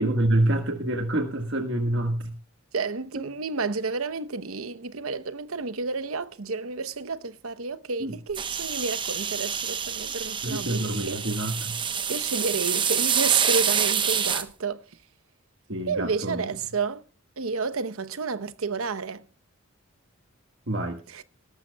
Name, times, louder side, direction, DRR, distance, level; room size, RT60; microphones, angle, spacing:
voice 1, 0.0-2.3 8.0-8.1 10.4-11.8 15.7-16.5 20.7-21.0, right 1 dB, 55° right, 1.5 m, -26 dB
voice 2, 2.7-11.2 12.1-14.8 15.9-17.0 17.4-19.3 21.1-21.2, right 4 dB, 80° right, 0.9 m, -30 dB
sound 1, 8.3-14.4, right 7 dB, 25° right, 0.9 m, -27 dB
20.0 x 12.0 x 2.3 m
head